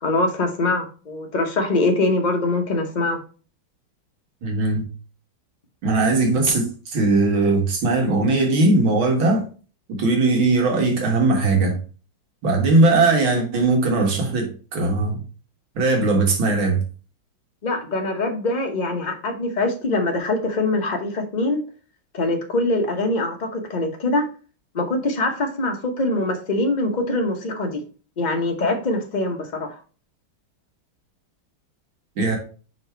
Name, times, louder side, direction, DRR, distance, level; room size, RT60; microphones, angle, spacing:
voice 1, 0.0-3.2 17.6-21.6 22.1-24.2 24.7-27.8 28.2-29.8, left 2 dB, 40° left, 0.6 m, -23 dB
voice 2, 4.4-4.9 5.8-9.5 9.9-11.8 12.4-15.2 15.8-16.8 32.2-32.4, right 3 dB, 80° right, 2.3 m, -19 dB
5.0 x 4.2 x 4.4 m
omnidirectional pair, 2.2 m